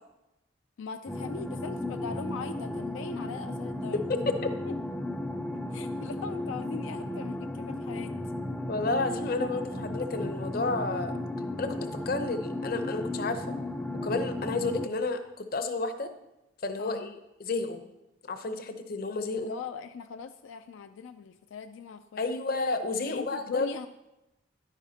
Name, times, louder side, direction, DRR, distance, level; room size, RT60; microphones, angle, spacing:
voice 1, 0.8-4.0 4.7-4.8 5.7-8.1 16.8-17.1 19.4-22.3 23.0-23.9, left 5 dB, 80° left, 8 dB, 0.3 m, -40 dB
sound 1, 1.1-14.9, left 1 dB, 5° left, 0.3 m, -35 dB
voice 2, 3.9-4.3 8.7-11.2 11.6-13.6 14.0-16.1 16.6-17.1 17.4-17.8 18.3-19.5 22.2-23.7, left 3 dB, 50° left, 8 dB, 0.7 m, -31 dB
11.0 x 9.1 x 2.8 m, 0.93 s
head